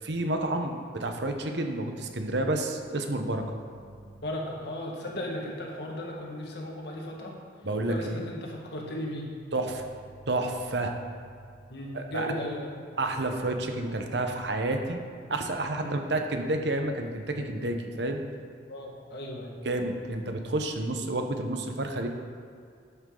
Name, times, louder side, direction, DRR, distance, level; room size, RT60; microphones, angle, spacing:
voice 1, 0.0-3.6 7.6-8.3 9.5-9.8 10.3-10.9 11.9-12.3 13.0-15.0 15.3-18.2 19.6-22.1, right 2 dB, 70° right, 4 dB, 1.1 m, -30 dB
voice 2, 4.1-7.3 7.9-9.3 11.7-12.7 15.8-16.0 18.7-19.6, left 1 dB, 65° left, -1 dB, 1.8 m, -36 dB
12.5 x 8.0 x 3.9 m, 2.2 s
head